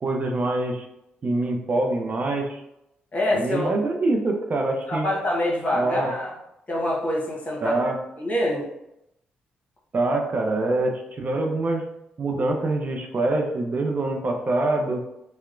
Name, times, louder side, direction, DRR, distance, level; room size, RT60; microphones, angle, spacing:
voice 1, 0.0-0.9 1.2-2.6 3.3-5.1 5.7-6.1 7.6-8.0 9.9-11.8 12.2-15.0, right 2 dB, 40° right, 2 dB, 0.4 m, -25 dB
voice 2, 3.1-3.7 4.9-6.3 6.7-7.8 8.2-8.6, left 1 dB, 40° left, -3 dB, 1.1 m, -25 dB
2.8 x 2.1 x 2.5 m, 0.85 s
supercardioid pair, 50°, 4 cm